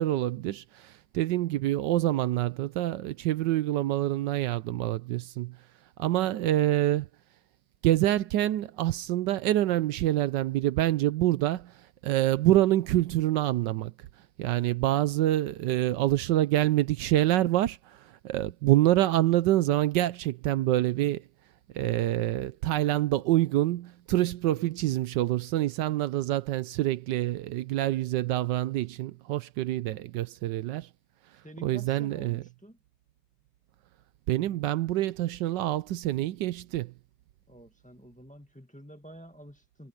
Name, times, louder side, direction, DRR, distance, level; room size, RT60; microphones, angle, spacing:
voice 1, 0.0-5.6 6.0-7.1 7.8-11.7 12.0-13.9 14.4-17.8 18.2-21.2 21.7-30.9 31.6-32.4 34.3-36.9, right 14 dB, 80° right, 1.2 m, -26 dB
voice 2, 31.4-32.8 37.5-39.9, equal, 5° left, 1.7 m, -50 dB
omnidirectional pair, 2.0 m